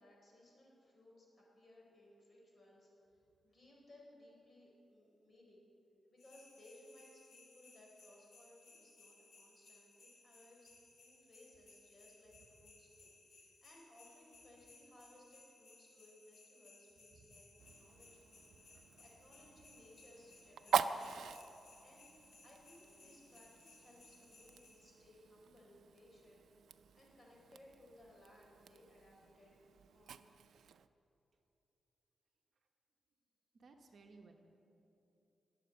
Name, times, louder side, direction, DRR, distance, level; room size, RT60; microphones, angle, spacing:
voice 1, 0.0-5.7 6.1-18.5 18.7-21.1 21.4-22.1 22.4-26.4 26.9-29.5 29.9-30.2, left 1 dB, 35° left, -2 dB, 4.7 m, -63 dB
sound 1, 6.2-24.7, left 3 dB, 65° left, 4.8 m, -63 dB
Fire, 17.6-30.9, right 7 dB, 80° right, 0.5 m, -44 dB
voice 2, 18.7-19.0 33.5-34.3, right 4 dB, 55° right, 3 dB, 1.3 m, -61 dB
21.0 x 8.1 x 8.1 m, 2.9 s
wide cardioid pair, 140°, 0 cm